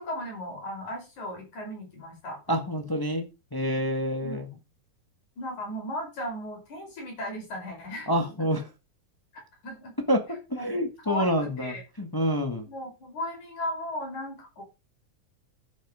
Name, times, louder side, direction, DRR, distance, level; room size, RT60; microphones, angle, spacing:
voice 1, 0.0-2.4 4.2-4.6 5.4-8.1 9.3-9.9 10.6-10.7 11.0-11.8 12.6-14.6, left 1 dB, 70° left, 6.1 m, -36 dB
voice 2, 2.5-4.5 8.1-8.6 10.1-12.7, equal, 30° left, 0.4 m, -28 dB
10.5 x 9.4 x 4.9 m
omnidirectional pair, 3.6 m